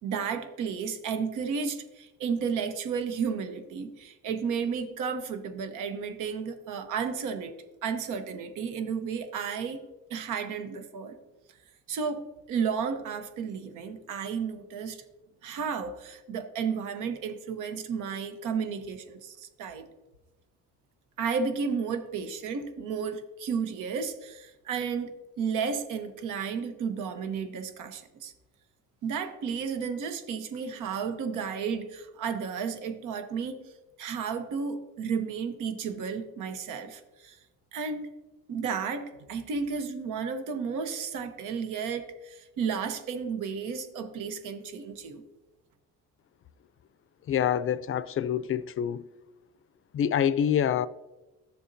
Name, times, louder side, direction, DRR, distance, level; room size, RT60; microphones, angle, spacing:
voice 1, 0.0-7.5 7.8-11.2 11.9-15.0 15.4-19.8 21.2-28.3 29.0-33.6 34.0-37.4 37.7-38.1 38.5-45.2, right 6 dB, 90° right, 1.0 m, -33 dB
voice 2, 47.3-49.0 49.9-50.9, left 9 dB, 45° left, 0.4 m, -26 dB
12.0 x 6.9 x 2.6 m
cardioid pair, 90°, 30 cm